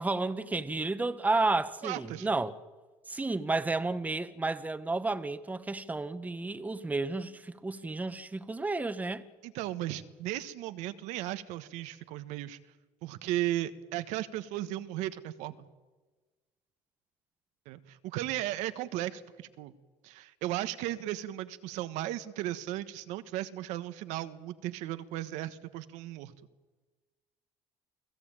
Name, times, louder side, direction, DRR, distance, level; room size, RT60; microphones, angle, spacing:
voice 1, 0.0-2.6 3.1-9.2, right 3 dB, 15° right, 1.3 m, -31 dB
voice 2, 1.8-2.3 9.4-12.6 13.0-15.7 17.7-19.7 20.0-26.3, right 14 dB, 80° right, 1.3 m, -36 dB
29.0 x 17.5 x 8.9 m
cardioid pair, 105°, 12 cm